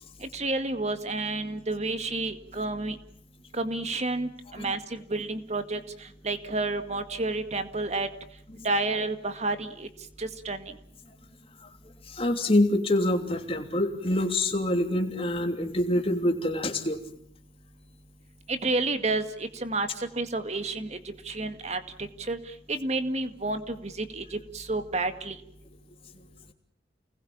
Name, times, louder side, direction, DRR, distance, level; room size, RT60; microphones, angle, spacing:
voice 1, 0.2-3.0 3.5-5.8 6.2-8.1 8.6-9.9 10.2-10.6 18.5-19.9 20.2-21.0 21.3-22.4 22.7-24.2 24.5-25.4, right 2 dB, 40° right, 9 dB, 2.0 m, -30 dB
voice 2, 12.1-17.0 26.1-26.2, left 1 dB, 30° left, 5 dB, 3.1 m, -26 dB
29.0 x 20.5 x 8.8 m, 0.68 s
head